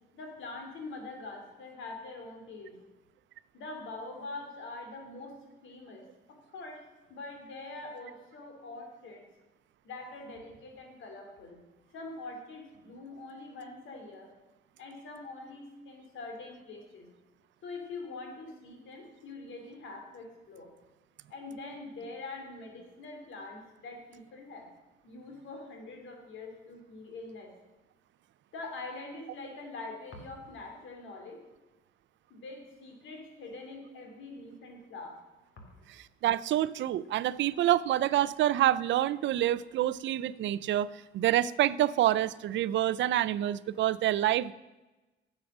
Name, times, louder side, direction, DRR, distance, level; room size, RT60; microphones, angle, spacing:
voice 1, 0.1-2.8 3.5-5.4 5.6-6.8 7.1-9.2 9.8-11.6 11.9-14.3 14.8-17.1 17.6-20.7 21.3-24.7 25.0-27.5 28.5-31.4 32.3-35.2 35.6-35.8, left 3 dB, 75° left, 3 dB, 2.7 m, -44 dB
voice 2, 36.2-40.9 41.1-44.5, right 13 dB, 70° right, 18 dB, 0.4 m, -27 dB
10.5 x 7.4 x 6.1 m, 1.1 s
cardioid pair, 90°, 20 cm